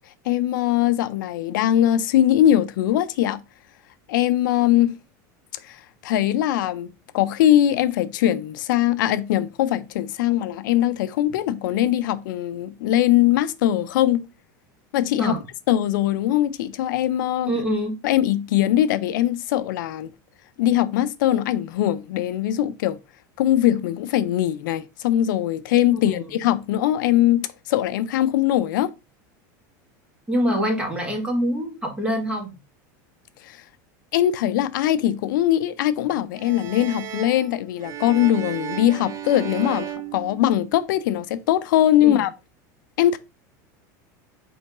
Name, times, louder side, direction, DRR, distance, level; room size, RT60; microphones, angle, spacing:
voice 1, 0.3-3.4 4.1-5.0 5.6-14.3 14.9-15.3 15.7-17.5 18.0-20.1 20.6-23.0 23.4-28.9 33.5-33.6 34.1-42.3 43.0-43.2, left 12 dB, 80° left, 0.4 m, -21 dB
voice 2, 17.5-18.0 25.9-26.2 30.3-32.6 42.0-42.3, equal, 10° right, 1.5 m, -25 dB
sound 1, 36.4-41.0, right 10 dB, 30° right, 0.6 m, -34 dB
4.6 x 3.1 x 3.6 m
supercardioid pair, 125°, 10 cm